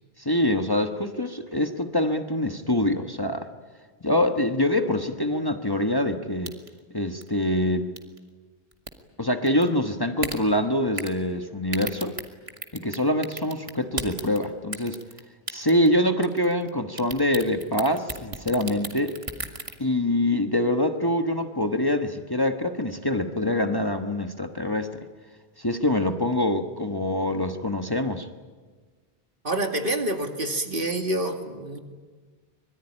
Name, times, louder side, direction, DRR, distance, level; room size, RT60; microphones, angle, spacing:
voice 1, 0.2-3.5 4.0-6.5 6.9-7.9 9.2-12.2 12.7-15.0 15.5-19.2 19.8-24.9 25.6-28.3, left 1 dB, 25° left, 5 dB, 1.2 m, -25 dB
sound 1, 6.4-6.8 7.2-7.3 8.0-8.2 8.7-8.9 9.5-9.7 10.2-10.4 11.0-11.2 11.7-13.0 13.2-14.4 14.7-15.2 15.5-15.9 16.2-16.7 17.0-19.7, right 2 dB, 30° right, 2.2 m, -33 dB
voice 2, 29.4-31.8, right 1 dB, 60° right, 4 dB, 2.5 m, -27 dB
25.0 x 22.0 x 9.9 m, 1.4 s
omnidirectional pair, 1.0 m